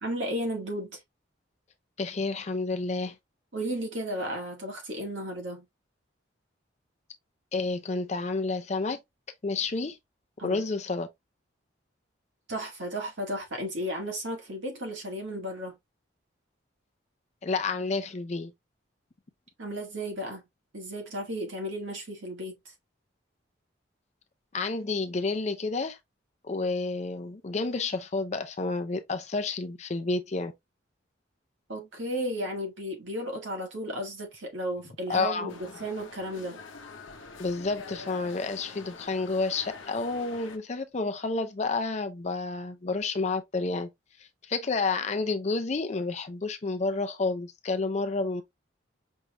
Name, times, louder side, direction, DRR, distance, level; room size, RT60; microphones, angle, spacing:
voice 1, 0.0-1.0 3.5-5.6 10.4-10.6 12.5-15.8 19.6-20.4 20.7-22.5 31.7-36.6, equal, 75° right, 1.6 m, -34 dB
voice 2, 2.0-3.2 7.5-9.0 9.4-10.0 10.4-11.1 17.4-18.5 24.5-26.0 26.4-30.5 35.1-35.5 37.4-43.9 44.2-48.4, left 3 dB, 35° left, 0.5 m, -30 dB
sound 1, 35.5-40.6, left 4 dB, 80° left, 0.8 m, -45 dB
5.4 x 3.2 x 2.2 m
head